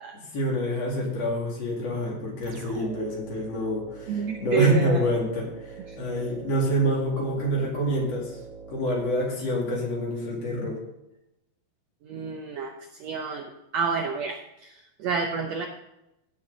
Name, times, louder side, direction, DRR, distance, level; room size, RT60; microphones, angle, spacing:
voice 1, 0.1-8.4 8.7-10.8, equal, 50° left, -1 dB, 3.1 m, -27 dB
sound 1, 2.4-9.9, right 5 dB, 70° right, 1.4 m, -44 dB
voice 2, 4.1-5.1 5.9-6.0 12.0-15.7, right 6 dB, 90° right, 3 dB, 1.5 m, -30 dB
16.0 x 7.4 x 3.9 m, 0.90 s
omnidirectional pair, 4.2 m